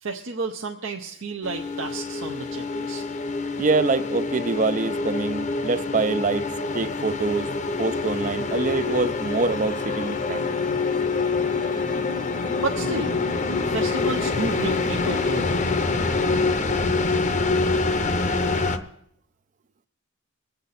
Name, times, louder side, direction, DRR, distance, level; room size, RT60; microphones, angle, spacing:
voice 1, 0.0-3.0 12.6-13.2 13.6-15.7, right 3 dB, 65° right, 0.7 m, -31 dB
sound 1, 1.4-18.8, left 3 dB, 35° left, 0.6 m, -26 dB
voice 2, 3.6-6.5 6.7-7.5 7.8-10.6, right 3 dB, 35° right, 0.4 m, -25 dB
23.5 x 8.1 x 4.1 m
head